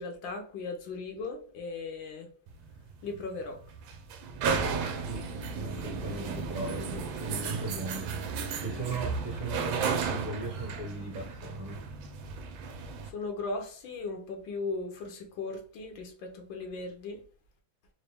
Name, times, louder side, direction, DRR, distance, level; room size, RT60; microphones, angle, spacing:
voice 1, 0.0-2.3 3.0-3.6 13.1-17.2, left 3 dB, 75° left, 1.5 m, -37 dB
sound 1, 2.5-13.1, right 5 dB, 80° right, 1.4 m, -34 dB
voice 2, 5.0-8.2 8.6-11.9, right 2 dB, 25° right, 1.3 m, -38 dB
4.1 x 2.3 x 3.4 m
omnidirectional pair, 2.1 m